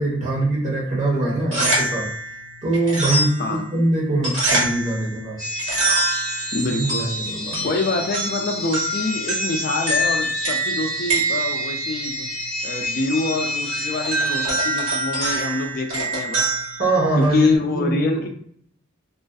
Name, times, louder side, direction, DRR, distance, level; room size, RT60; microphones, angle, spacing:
voice 1, 0.0-2.1 2.6-3.3 3.7-5.4 6.7-7.7 16.8-18.3, right 2 dB, 35° right, -4 dB, 0.9 m, -23 dB
sound 1, 1.3-17.6, right 2 dB, 65° right, 1.4 m, -26 dB
sound 2, 5.4-15.2, left 1 dB, 15° left, 0.9 m, -30 dB
voice 2, 6.5-7.1 7.6-12.3 12.6-16.5 17.2-18.3, left 3 dB, 45° left, 4 dB, 0.4 m, -25 dB
2.4 x 2.4 x 2.3 m, 0.66 s
head